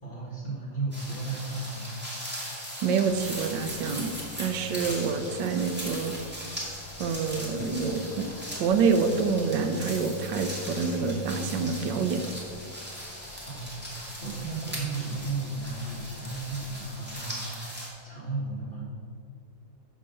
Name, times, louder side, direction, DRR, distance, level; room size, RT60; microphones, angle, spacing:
voice 1, 0.0-1.8 4.6-5.0 13.4-18.8, right 3 dB, 30° left, -4 dB, 1.6 m, -35 dB
sound 1, 0.9-17.9, equal, 5° right, 1.7 m, -39 dB
voice 2, 2.8-4.1 4.4-6.1 7.0-8.3 8.6-12.2, right 5 dB, 80° right, 7 dB, 1.4 m, -27 dB
sound 2, 3.1-17.4, left 4 dB, 65° left, 1.0 m, -45 dB
10.0 x 3.8 x 6.9 m, 2.3 s
omnidirectional pair, 2.0 m